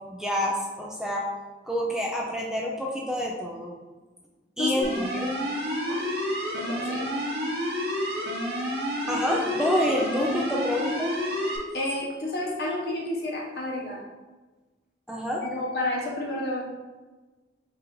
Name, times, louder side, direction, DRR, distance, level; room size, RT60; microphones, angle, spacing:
voice 1, 0.1-1.3 1.7-3.7 4.6-5.3 9.1-11.1 15.1-15.4, equal, 5° right, -2 dB, 0.4 m, -28 dB
voice 2, 4.6-4.9 5.9-6.0 6.6-7.1 11.7-14.0 15.4-16.6, left 1 dB, 60° left, -2 dB, 0.9 m, -30 dB
sound 1, 4.8-11.6, equal, 65° right, 1.1 m, -29 dB
4.2 x 2.6 x 3.8 m, 1.2 s
head